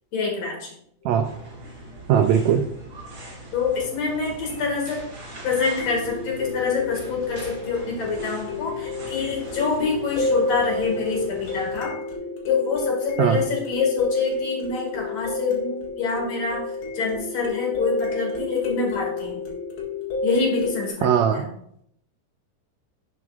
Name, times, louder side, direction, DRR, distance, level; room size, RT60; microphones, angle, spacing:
voice 1, 0.1-0.7 3.5-5.0 5.4-11.9 12.5-16.6 16.9-19.4 20.2-21.1 21.3-21.5, left 5 dB, 55° left, -1 dB, 3.0 m, -26 dB
sound 1, 1.1-1.2 5.8-20.9, left 3 dB, 90° left, 3.6 m, -30 dB
sound 2, 1.2-11.8, right 1 dB, 40° right, 3.2 m, -41 dB
voice 2, 2.1-2.7 13.2-13.4 21.0-21.4, right 8 dB, 85° right, 6 dB, 1.6 m, -19 dB
11.0 x 7.8 x 2.5 m, 0.70 s
omnidirectional pair, 3.8 m